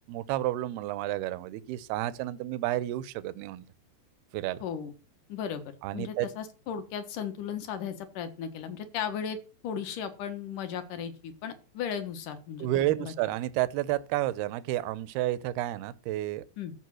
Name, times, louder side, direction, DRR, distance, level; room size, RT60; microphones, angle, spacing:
voice 1, 0.1-3.6 4.3-4.6 5.8-6.3 12.6-16.4, right 15 dB, 80° right, 2.6 m, -30 dB
voice 2, 4.6-4.9 5.3-9.4 9.6-13.1 16.6-16.7, left 8 dB, 60° left, 2.7 m, -36 dB
14.0 x 5.4 x 7.6 m
omnidirectional pair, 4.7 m